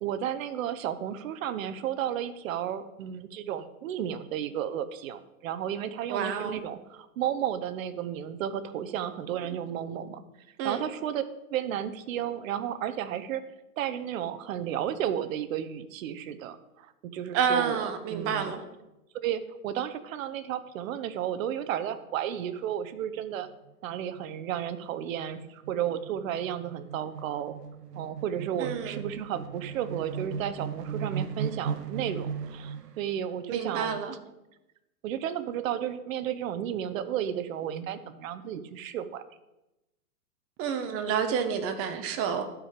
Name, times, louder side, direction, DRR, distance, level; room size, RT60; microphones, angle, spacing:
voice 1, 0.0-10.2 10.6-11.2 11.5-13.4 13.8-16.9 17.1-18.5 19.2-23.5 23.8-27.5 28.0-34.0 35.0-39.2, right 10 dB, 55° right, 12 dB, 1.0 m, -33 dB
voice 2, 6.1-6.6 10.6-10.8 17.3-18.6 28.6-29.0 33.5-34.1 40.6-42.4, right 7 dB, 30° right, 8 dB, 1.1 m, -29 dB
sound 1, 22.7-22.8 23.1-23.2 23.5-33.1, right 7 dB, 80° right, 1.0 m, -38 dB
12.0 x 4.9 x 5.2 m, 0.95 s
hypercardioid pair, 130°, 47 cm